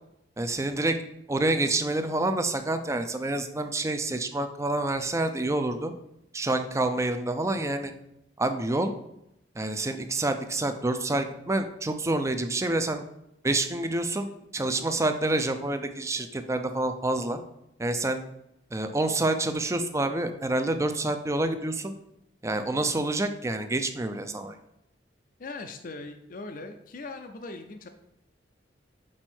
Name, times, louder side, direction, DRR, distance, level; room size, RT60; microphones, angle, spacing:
voice 1, 0.4-1.0 1.3-5.9 6.3-7.9 8.4-8.9 9.6-13.0 13.4-17.4 17.8-18.2 18.7-21.9 22.4-24.6, right 2 dB, 15° right, 8 dB, 0.5 m, -27 dB
voice 2, 25.4-27.9, left 3 dB, 45° left, 6 dB, 0.5 m, -40 dB
6.2 x 4.4 x 4.4 m, 0.81 s
head